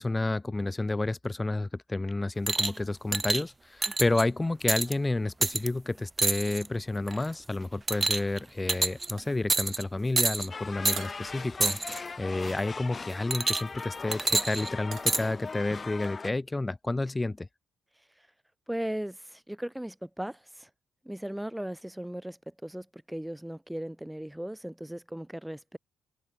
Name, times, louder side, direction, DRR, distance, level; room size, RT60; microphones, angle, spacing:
voice 1, 0.0-11.8 12.2-17.5, left 2 dB, 15° left, 1.5 m, -30 dB
sound 1, 2.5-2.8 3.1-3.4 3.8-4.2 4.7-4.9 5.4-5.7 6.2-6.7 7.1-7.3 7.9-8.4 8.7-9.1 9.5-9.8 10.2-10.5 10.9-11.0 11.6-12.0 13.3-13.8 14.1-15.2 16.0-16.1, right 3 dB, 20° right, 1.1 m, -27 dB
sound 2, 9.2-9.9 11.0-11.3 12.4-13.0 14.9-15.2, right 8 dB, 55° right, 3.5 m, -47 dB
sound 3, 10.5-16.3, left 4 dB, 30° left, 4.7 m, -40 dB
voice 2, 18.7-20.7 21.1-25.8, right 1 dB, 5° right, 5.2 m, -37 dB
open air
cardioid pair, 90°, 0 cm